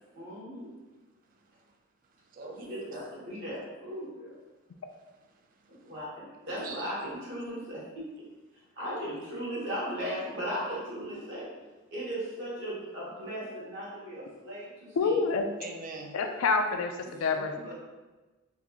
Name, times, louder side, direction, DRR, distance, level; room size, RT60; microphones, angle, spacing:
voice 1, 0.1-0.7 2.4-4.3 5.7-8.1 8.8-11.5 11.9-15.1 17.0-17.7, equal, 60° right, -8 dB, 1.4 m, -37 dB
voice 2, 1.3-1.7 2.2-2.9 5.3-5.9 6.6-6.9 15.6-16.2, right 3 dB, 40° right, 3 dB, 0.4 m, -45 dB
voice 3, 15.0-15.5 16.1-17.7, left 4 dB, 80° left, 6 dB, 0.4 m, -27 dB
3.5 x 2.4 x 3.0 m, 1.2 s
head